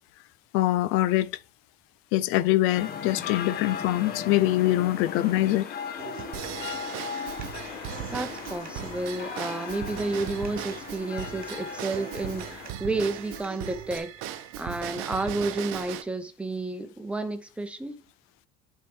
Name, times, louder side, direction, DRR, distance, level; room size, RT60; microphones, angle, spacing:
voice 1, 0.5-1.3 2.1-5.7, left 15 dB, 85° left, 0.5 m, -24 dB
sound 1, 2.7-12.7, left 7 dB, 45° left, 1.1 m, -37 dB
Human voice / Acoustic guitar, 6.0-14.0, right 8 dB, 40° right, 0.9 m, -45 dB
Drum kit / Drum / Bell, 6.3-16.0, right 11 dB, 80° right, 1.0 m, -38 dB
voice 2, 8.1-18.1, right 2 dB, 5° right, 0.7 m, -31 dB
10.5 x 4.6 x 3.5 m
cardioid pair, 175°, 21 cm